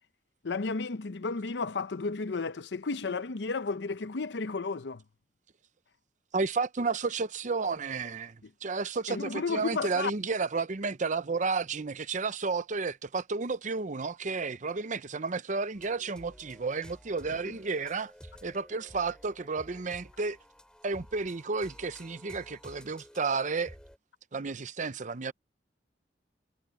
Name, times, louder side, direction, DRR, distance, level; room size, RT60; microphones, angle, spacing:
voice 1, 0.4-5.0 9.1-10.1 17.4-17.5, left 4 dB, 80° left, 0.7 m, -33 dB
voice 2, 6.3-18.1 18.4-20.4 20.8-23.7 24.3-25.3, right 4 dB, 45° right, 0.7 m, -32 dB
sound 1, 15.7-24.0, equal, 5° left, 6.0 m, -52 dB
head